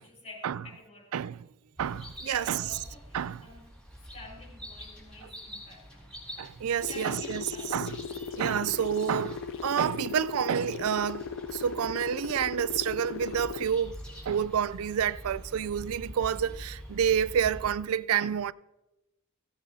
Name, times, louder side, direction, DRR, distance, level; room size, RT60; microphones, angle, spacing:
voice 1, 0.0-1.2 2.2-3.7 4.1-6.1 6.9-7.9, left 2 dB, 30° left, 5.3 m, -49 dB
sound 1, 1.8-17.7, equal, 5° left, 4.0 m, -46 dB
voice 2, 1.8-2.6 3.1-3.4 6.4-7.4 7.7-8.0 8.4-13.9 14.2-18.5, right 8 dB, 85° right, 0.4 m, -29 dB
sound 2, 6.8-13.7, left 6 dB, 60° left, 0.4 m, -38 dB
17.0 x 16.5 x 2.7 m
head